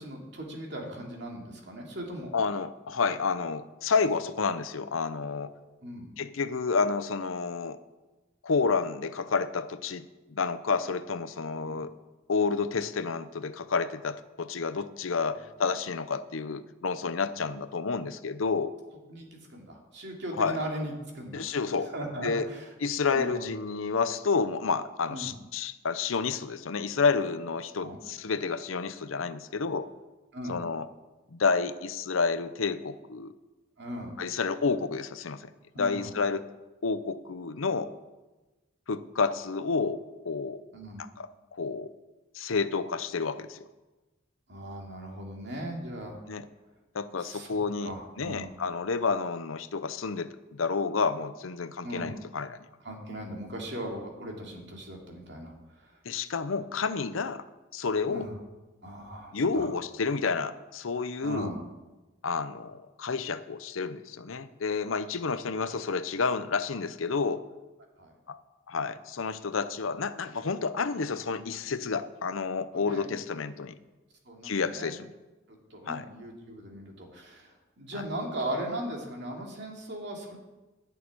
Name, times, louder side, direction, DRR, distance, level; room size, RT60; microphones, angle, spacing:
voice 1, 0.0-2.3 5.8-6.1 11.6-11.9 19.1-21.4 21.9-22.6 23.1-23.4 25.1-25.3 27.8-28.0 30.3-30.6 33.8-34.2 35.7-36.1 40.7-41.0 44.5-46.2 47.2-48.5 51.8-52.1 52.8-55.5 58.1-58.3 58.8-59.6 61.2-61.6 68.0-68.1 72.7-73.2 74.3-74.9 75.5-77.5 77.8-80.4, right 1 dB, 60° right, 0 dB, 2.6 m, -38 dB
voice 2, 2.3-5.5 6.2-7.8 8.4-10.1 10.3-11.9 12.3-18.8 20.4-20.6 21.3-22.5 22.8-29.9 30.5-30.9 31.3-33.3 34.2-35.5 35.8-36.5 36.8-37.9 38.9-40.6 41.0-41.9 42.3-43.6 46.3-46.5 46.9-52.6 56.0-57.4 57.7-58.3 59.3-61.5 62.2-67.4 68.3-68.4 68.7-73.8 74.4-75.1 75.9-76.1 77.9-78.0, left 4 dB, 85° left, 13 dB, 0.7 m, -30 dB
11.5 x 6.6 x 9.5 m, 1.1 s
head